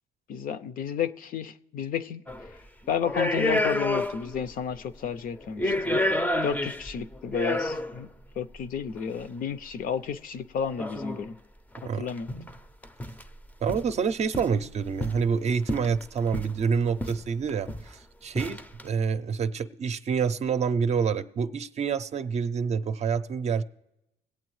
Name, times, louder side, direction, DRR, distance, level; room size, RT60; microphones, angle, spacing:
voice 1, 0.3-2.2 2.9-6.0 6.4-8.1 8.4-11.4 12.0-12.3, left 7 dB, 55° left, 0.6 m, -32 dB
sound 1, 2.3-2.5 3.0-4.4 4.7-4.8 5.4-8.0 9.0-9.1 10.8-11.2 11.7-11.8 12.1-12.6 12.8-13.3 13.7-13.9 14.3-15.3 15.7-16.6 17.0-17.2 17.5-17.9 18.4-18.8, left 1 dB, 10° left, 0.5 m, -29 dB
voice 2, 13.6-23.6, right 6 dB, 40° right, 0.6 m, -27 dB
20.5 x 8.3 x 3.1 m
cardioid pair, 110°, 17 cm